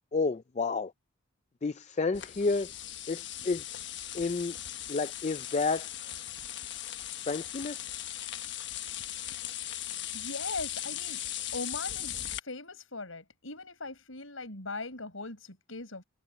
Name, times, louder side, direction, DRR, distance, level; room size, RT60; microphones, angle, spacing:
voice 1, 0.1-0.9 1.6-2.7 3.1-3.6 4.1-4.5 4.9-5.9 7.3-7.9, left 3 dB, 35° left, 0.4 m, -30 dB
sound 1, 2.1-12.4, left 12 dB, 60° left, 1.3 m, -38 dB
voice 2, 10.1-11.2 11.5-16.0, left 3 dB, 80° left, 5.0 m, -40 dB
head